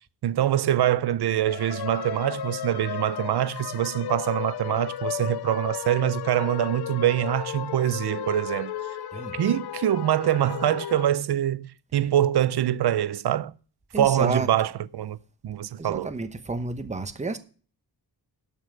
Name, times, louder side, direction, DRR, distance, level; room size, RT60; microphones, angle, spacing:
voice 1, 0.2-8.7 9.3-13.5 14.0-15.2 15.4-16.1, right 11 dB, 75° right, 0.7 m, -24 dB
sound 1, 1.5-11.1, left 10 dB, 70° left, 0.7 m, -34 dB
voice 2, 13.9-14.5 15.8-17.4, right 3 dB, 15° right, 0.9 m, -30 dB
12.0 x 5.6 x 7.8 m
wide cardioid pair, 165°, 40 cm